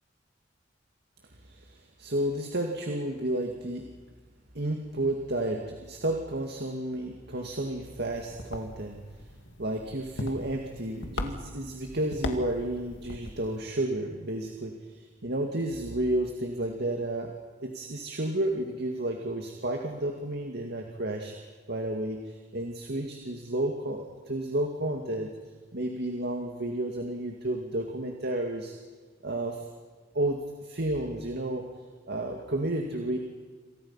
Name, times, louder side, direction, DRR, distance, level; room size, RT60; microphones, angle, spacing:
voice 1, 1.4-3.9 4.5-9.0 9.6-17.3 17.6-25.3 25.7-28.7 29.2-29.7 30.1-31.6 32.1-33.2, right 1 dB, 60° right, 3 dB, 2.2 m, -31 dB
sound 1, 8.1-13.7, left 1 dB, 70° left, 2.3 m, -39 dB
28.0 x 27.5 x 5.8 m, 1.4 s
head